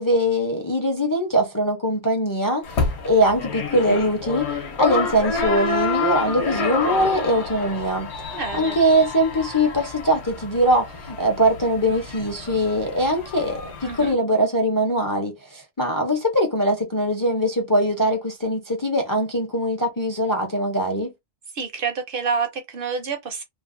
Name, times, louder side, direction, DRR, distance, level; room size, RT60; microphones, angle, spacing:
voice 1, 0.0-2.6 3.0-4.5 4.8-8.1 8.5-21.1, equal, 25° left, 0.4 m, -22 dB
sound 1, 2.6-14.1, left 4 dB, 70° left, 1.0 m, -28 dB
voice 2, 8.3-8.8 13.8-14.2 21.5-23.4, right 5 dB, 60° right, 0.7 m, -28 dB
3.1 x 2.0 x 2.4 m
omnidirectional pair, 1.2 m